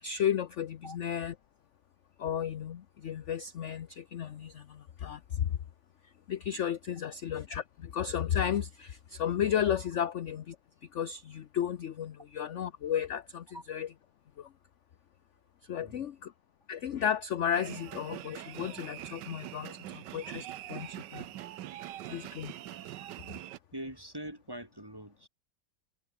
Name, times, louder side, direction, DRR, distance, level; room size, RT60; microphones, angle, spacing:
voice 1, 0.0-1.3 2.2-5.6 6.3-10.5 10.9-13.9 14.4-14.5 15.7-16.3 16.7-21.3 22.0-22.5, left 9 dB, 55° left, 0.9 m, -33 dB
voice 2, 15.8-16.1 23.7-25.3, right 1 dB, 10° right, 3.0 m, -43 dB
sound 1, 17.5-23.6, right 13 dB, 80° right, 1.4 m, -43 dB
omnidirectional pair, 1.9 m